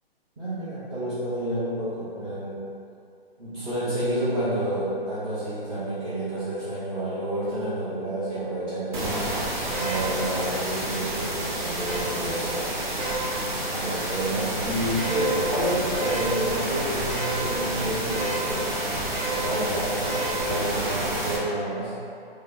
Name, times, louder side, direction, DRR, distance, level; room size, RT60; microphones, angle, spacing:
voice 1, 0.4-2.6 3.4-12.7 13.7-18.7 19.3-21.9, right 1 dB, 25° right, -13 dB, 1.1 m, -29 dB
sound 1, 8.9-21.4, right 1 dB, 50° right, 0.8 m, -29 dB
3.3 x 2.2 x 3.9 m, 2.5 s
figure-of-eight pair, 145°, 31 cm